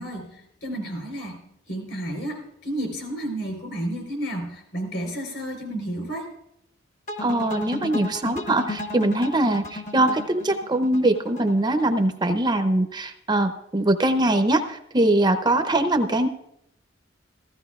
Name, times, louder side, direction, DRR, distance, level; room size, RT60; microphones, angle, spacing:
voice 1, 0.0-1.4 1.7-6.3, right 1 dB, 65° left, 3 dB, 3.8 m, -31 dB
sound 1, 7.1-12.2, left 2 dB, 40° left, 1.0 m, -34 dB
voice 2, 7.2-16.3, right 1 dB, 20° right, 7 dB, 0.6 m, -22 dB
15.0 x 15.0 x 2.4 m, 0.78 s
head